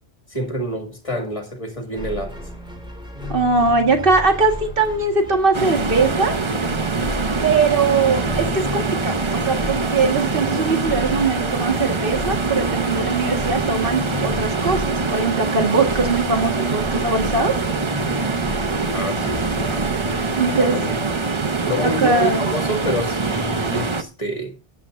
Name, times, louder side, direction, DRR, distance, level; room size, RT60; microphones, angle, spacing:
voice 1, 0.3-2.3 18.9-19.7 20.5-21.0 21.7-24.5, equal, 30° left, 2.2 m, -27 dB
sound 1, 1.9-20.5, left 2 dB, 5° right, 3.8 m, -33 dB
voice 2, 3.3-6.4 7.4-17.6 20.4-20.8 21.8-22.5, right 3 dB, 55° right, 1.9 m, -21 dB
sound 2, 5.5-24.0, right 4 dB, 30° right, 0.8 m, -24 dB
15.0 x 10.5 x 2.6 m
omnidirectional pair, 1.1 m